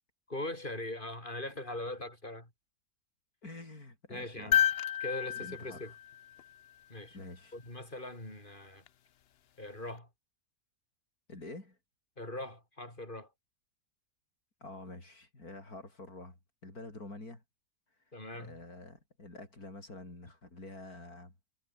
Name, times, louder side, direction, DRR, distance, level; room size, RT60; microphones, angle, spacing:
voice 1, 0.3-2.5 4.1-4.6 5.0-5.9 6.9-7.2 7.5-8.8 9.6-10.1 12.2-13.3 18.1-18.6, left 1 dB, 35° left, 7.3 m, -41 dB
voice 2, 3.4-4.6 5.3-5.9 7.1-7.5 11.3-11.8 14.6-17.4 18.4-21.3, left 2 dB, 80° left, 6.1 m, -47 dB
sound 1, 4.5-6.8 8.9-9.0, left 10 dB, 55° left, 0.7 m, -31 dB
omnidirectional pair, 1.6 m